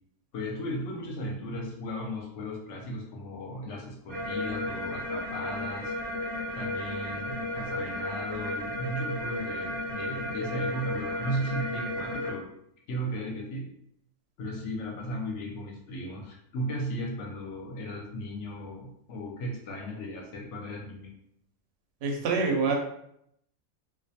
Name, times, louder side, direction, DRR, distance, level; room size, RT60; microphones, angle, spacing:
voice 1, 0.3-5.9 6.6-12.5 12.9-13.7 14.4-21.1, equal, 70° left, 0 dB, 0.8 m, -36 dB
sound 1, 4.1-12.3, left 1 dB, 90° right, 1.0 m, -34 dB
voice 2, 22.0-22.7, right 4 dB, 65° right, 2 dB, 0.7 m, -26 dB
2.3 x 2.1 x 2.7 m, 0.74 s
omnidirectional pair, 1.5 m